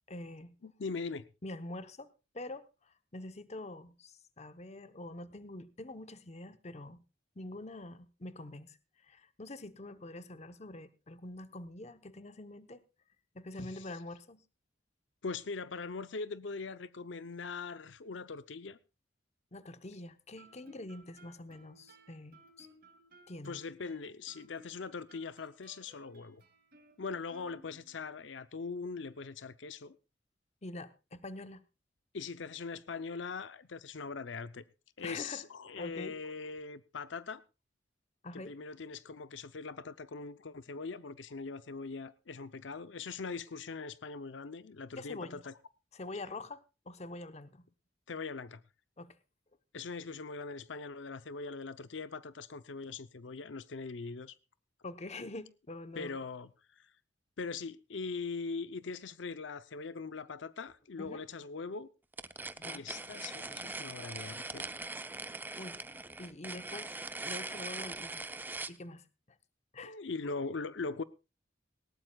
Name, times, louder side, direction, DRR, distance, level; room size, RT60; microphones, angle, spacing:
voice 1, 0.1-0.5 1.4-2.1 2.3-7.0 7.4-8.8 9.0-12.8 13.3-14.4 19.5-22.7 23.3-23.6 30.6-31.6 35.0-35.4 35.8-36.2 38.2-38.5 45.0-45.4 45.9-46.6 46.9-47.7 49.0-49.2 54.8-56.2 61.0-61.2 62.6-62.8 65.5-65.8 66.2-68.2 68.7-69.1 69.7-70.0, left 2 dB, 35° left, 1.0 m, -45 dB
voice 2, 0.6-1.3 15.2-18.8 23.4-26.4 27.0-30.0 32.1-34.6 35.0-37.4 38.3-45.5 48.1-48.6 49.7-54.4 56.0-56.9 57.4-61.9 62.6-64.7 69.8-71.0, left 4 dB, 80° left, 0.7 m, -41 dB
Guitar, 20.4-28.1, right 1 dB, 55° right, 2.5 m, -60 dB
sound 1, 62.1-68.8, right 2 dB, 10° right, 0.6 m, -41 dB
19.0 x 18.0 x 2.3 m
head